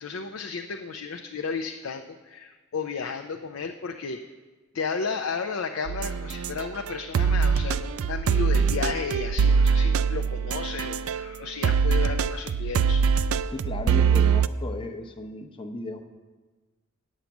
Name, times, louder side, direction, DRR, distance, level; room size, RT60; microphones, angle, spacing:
voice 1, 0.0-4.2 4.7-13.1, left 5 dB, 70° left, 6 dB, 0.5 m, -33 dB
sound 1, 5.9-11.3 11.6-14.5, right 6 dB, 85° right, 0.4 m, -23 dB
voice 2, 13.5-16.0, left 2 dB, 25° left, 5 dB, 0.8 m, -35 dB
9.1 x 7.3 x 7.1 m, 1.3 s
head